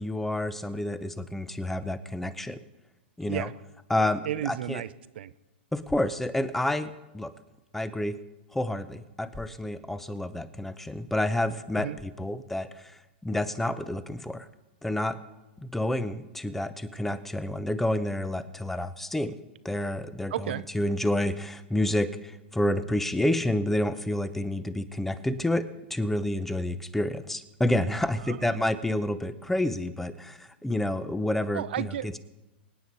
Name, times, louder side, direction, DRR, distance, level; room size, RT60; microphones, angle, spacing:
voice 1, 0.0-2.6 3.2-3.5 3.9-4.8 5.7-7.4 7.7-8.2 8.5-14.5 14.8-15.2 15.6-19.4 19.6-31.9, left 1 dB, 5° left, 0.8 m, -29 dB
voice 2, 4.0-5.3 11.8-12.0 20.3-20.6 28.2-28.6 31.5-32.2, right 11 dB, 70° right, 0.6 m, -33 dB
24.5 x 9.3 x 4.2 m
hypercardioid pair, 130°, 6 cm